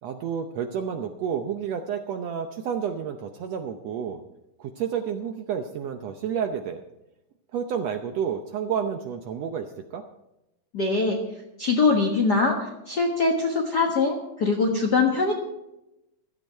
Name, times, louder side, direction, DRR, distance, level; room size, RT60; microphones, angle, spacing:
voice 1, 0.0-4.2 4.6-6.8 7.5-10.0, right 7 dB, 70° right, 6 dB, 1.8 m, -30 dB
voice 2, 10.7-11.2 11.6-15.3, left 3 dB, 45° left, 1 dB, 1.5 m, -23 dB
15.5 x 12.5 x 4.5 m, 0.91 s
omnidirectional pair, 3.5 m